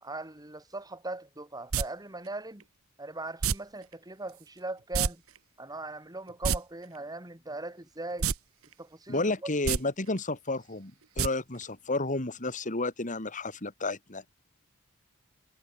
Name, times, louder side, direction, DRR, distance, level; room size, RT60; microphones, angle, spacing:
voice 1, 0.0-2.6 3.0-5.2 5.6-8.3 8.8-9.5, right 2 dB, 20° right, 2.9 m, -39 dB
sound 1, 1.7-1.8 3.4-3.5 4.9-5.1 5.4-5.5 6.3-6.6 8.2-8.4 8.7-8.8 9.5-9.8 11.2-11.3 11.6-11.7, right 6 dB, 75° right, 1.0 m, -26 dB
voice 2, 9.1-14.2, left 2 dB, 35° left, 2.5 m, -31 dB
head